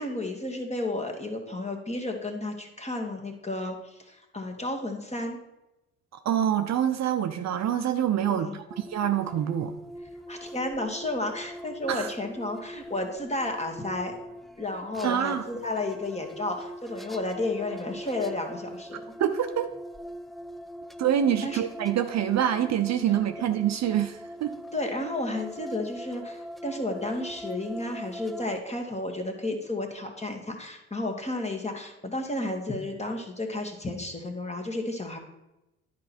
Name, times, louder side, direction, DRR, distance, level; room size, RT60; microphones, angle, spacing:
voice 1, 0.0-5.4 8.3-8.6 10.3-14.1 14.6-19.0 21.4-21.6 24.7-35.2, left 2 dB, 20° left, 3 dB, 1.6 m, -32 dB
voice 2, 6.2-9.7 11.9-12.1 15.0-15.4 19.2-19.7 21.0-24.5, right 10 dB, 50° right, 8 dB, 0.6 m, -26 dB
sound 1, 8.7-28.6, equal, ahead, 0.4 m, -42 dB
10.5 x 4.6 x 4.3 m, 0.95 s
hypercardioid pair, 50°, 35 cm